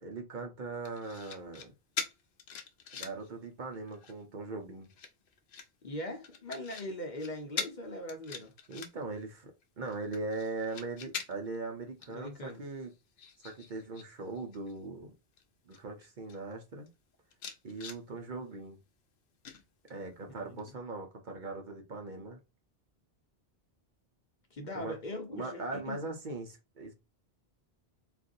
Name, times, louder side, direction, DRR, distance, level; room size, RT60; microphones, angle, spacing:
voice 1, 0.0-1.7 3.0-4.9 8.7-12.9 13.4-15.1 15.7-16.9 17.6-18.8 19.9-22.4 24.7-25.0 25.3-26.9, right 3 dB, 50° right, 0.8 m, -40 dB
sound 1, 0.8-1.7 2.0-3.3 3.7-4.2 4.8-5.7 6.2-6.9 7.2-7.3 7.6-7.8 8.1-9.2 9.6-11.6 12.0-12.2 12.5-14.1 14.3-14.7 15.4-15.5 15.7-16.4 16.9-17.0 17.3-18.0 19.4-20.1 20.6-20.7, left 6 dB, 75° left, 0.9 m, -42 dB
voice 2, 5.8-8.5 12.1-12.6 20.3-20.6 24.5-26.0, left 1 dB, 50° left, 0.9 m, -41 dB
3.8 x 2.5 x 2.6 m
omnidirectional pair, 1.1 m